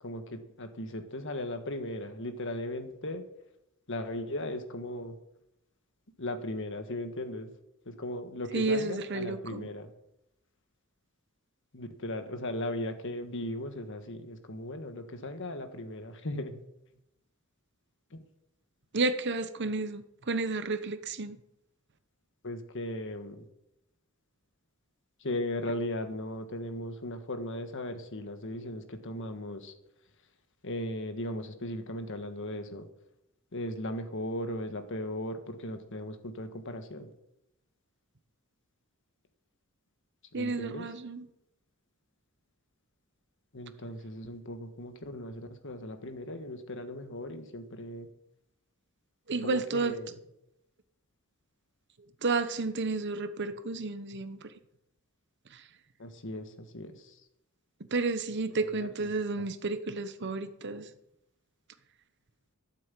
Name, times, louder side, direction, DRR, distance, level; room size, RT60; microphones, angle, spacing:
voice 1, 0.0-3.2 3.9-5.1 6.2-7.5 7.8-9.9 11.7-16.6 18.1-18.2 22.4-23.4 25.2-29.7 30.6-32.9 33.5-37.1 40.3-40.9 43.5-48.1 49.4-50.1 56.0-57.2 58.7-58.9, left 1 dB, 60° left, 1.5 m, -37 dB
voice 2, 8.5-9.7 18.9-21.4 40.3-41.3 49.3-49.9 52.2-54.4 55.5-55.6 57.9-60.9, right 3 dB, 55° right, 1.0 m, -31 dB
13.0 x 7.6 x 7.6 m
head